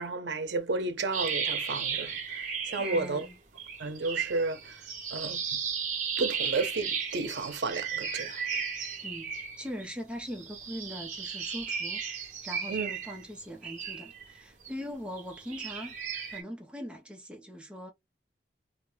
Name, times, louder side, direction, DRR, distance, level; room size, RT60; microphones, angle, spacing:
voice 1, 0.0-3.3 3.8-4.8 5.1-5.6 6.2-8.4 12.7-12.9, right 3 dB, 80° right, 0.6 m, -32 dB
sound 1, 1.1-3.3 3.6-9.9 10.3-14.7 15.2-16.4, right 6 dB, 45° right, 0.7 m, -35 dB
voice 2, 2.8-3.4 9.0-15.9 16.3-17.9, equal, 5° right, 0.6 m, -41 dB
2.4 x 2.2 x 3.1 m
head